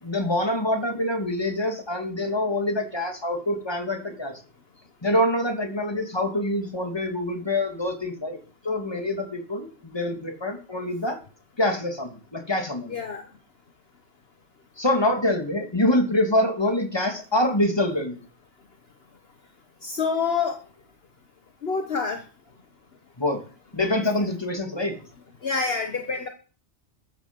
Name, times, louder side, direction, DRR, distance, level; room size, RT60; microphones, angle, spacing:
voice 1, 0.0-4.3 5.0-8.4 8.6-11.2 11.6-12.9 14.8-18.2 23.2-23.4 23.7-24.9, left 1 dB, 20° left, 4 dB, 2.8 m, -25 dB
voice 2, 12.9-13.2 19.8-20.6 21.6-22.2 24.1-24.2 25.4-26.3, left 5 dB, 60° left, 6 dB, 1.5 m, -27 dB
14.0 x 13.5 x 5.4 m, 0.38 s
omnidirectional pair, 1.2 m